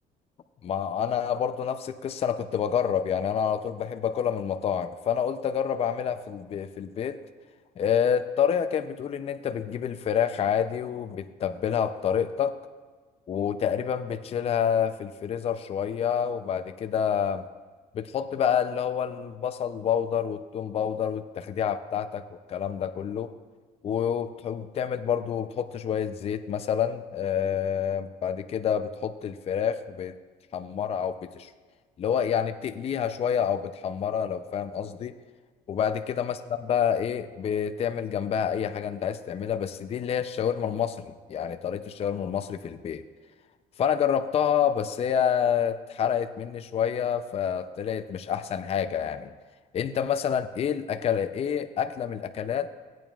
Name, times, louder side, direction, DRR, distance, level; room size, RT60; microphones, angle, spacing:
voice 1, 0.6-7.2 7.8-12.6 13.3-17.5 17.9-23.3 23.8-30.1 30.5-31.5 32.0-35.1 35.7-43.0 43.8-49.3 49.7-52.7, left 8 dB, 35° left, 9 dB, 0.5 m, -28 dB
16.0 x 9.0 x 2.3 m, 1.4 s
cardioid pair, 110°, 17 cm